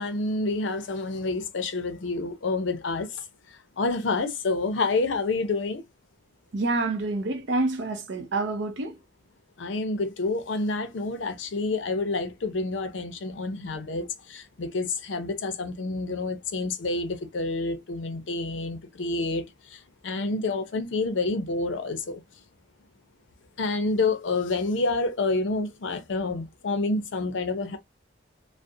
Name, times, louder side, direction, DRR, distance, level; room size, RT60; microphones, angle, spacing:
voice 1, 0.0-3.2 3.8-5.8 9.6-22.2 23.6-27.8, left 3 dB, 75° left, 0.6 m, -28 dB
voice 2, 6.5-8.9, right 2 dB, 65° right, 0.5 m, -27 dB
2.4 x 2.0 x 2.6 m
head